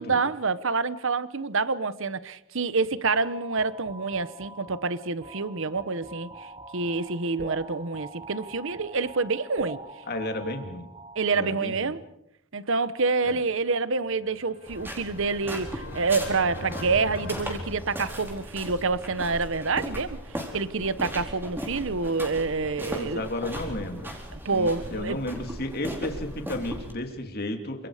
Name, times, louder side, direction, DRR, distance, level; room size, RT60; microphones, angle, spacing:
voice 1, 0.0-9.8 11.2-12.0 12.5-20.2 20.5-23.2 24.4-25.2, right 4 dB, 65° right, 1.1 m, -27 dB
sound 1, 3.0-11.7, right 2 dB, 30° right, 1.9 m, -44 dB
voice 2, 10.1-10.9 11.3-11.9 13.2-13.4 22.9-24.1 24.5-27.9, left 1 dB, 50° left, 3.1 m, -33 dB
sound 2, 14.2-18.6, left 1 dB, 70° left, 7.7 m, -40 dB
sound 3, 14.7-26.9, equal, 10° right, 4.5 m, -37 dB
28.5 x 26.0 x 5.1 m
head